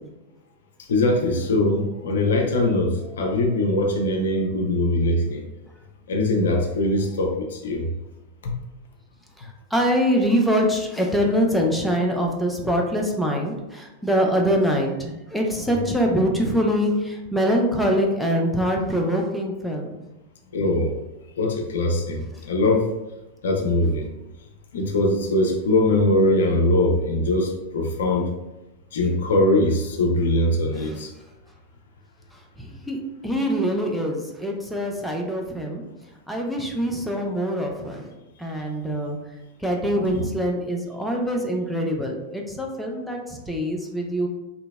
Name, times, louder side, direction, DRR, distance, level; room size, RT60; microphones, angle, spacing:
voice 1, 0.8-5.4 6.1-7.9 8.4-8.5 20.5-20.9 21.4-22.9 23.4-24.1 24.7-28.3 28.9-31.1 40.1-40.3, left 1 dB, 60° left, 2 dB, 0.4 m, -22 dB
voice 2, 9.4-20.0 32.6-35.8 36.3-38.1 38.4-39.2 39.6-44.3, equal, ahead, 0 dB, 0.4 m, -24 dB
2.8 x 2.6 x 2.2 m, 1.0 s
figure-of-eight pair, 90°, 0 cm